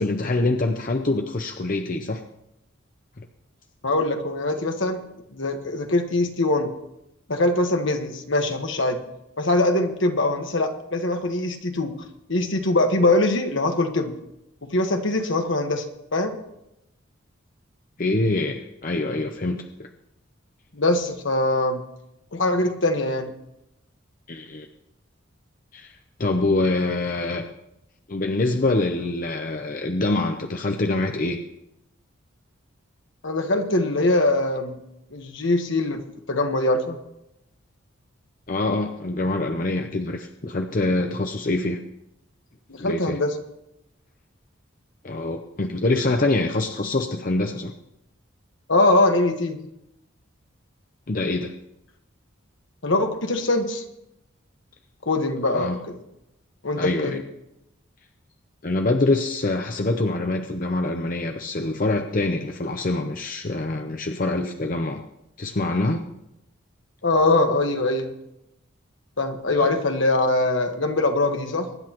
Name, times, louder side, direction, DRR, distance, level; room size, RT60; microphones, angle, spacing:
voice 1, 0.0-2.2 3.2-3.3 18.0-19.9 24.3-24.7 25.7-27.4 28.1-31.4 38.5-41.8 42.8-43.2 45.0-47.7 51.1-51.5 55.5-55.8 56.8-57.2 58.6-65.0 65.4-66.0 69.5-69.7, left 2 dB, 40° left, 5 dB, 0.7 m, -25 dB
voice 2, 3.8-5.0 5.3-6.7 7.3-9.0 9.4-11.9 12.3-14.1 14.6-15.8 16.1-16.4 20.7-21.8 22.3-23.3 33.2-34.8 35.1-36.0 36.3-37.0 42.7-43.3 48.7-49.6 52.8-53.8 55.0-56.0 56.6-57.1 67.0-68.1 69.2-71.7, left 2 dB, 65° left, 5 dB, 1.4 m, -22 dB
23.0 x 10.5 x 3.0 m, 0.86 s
head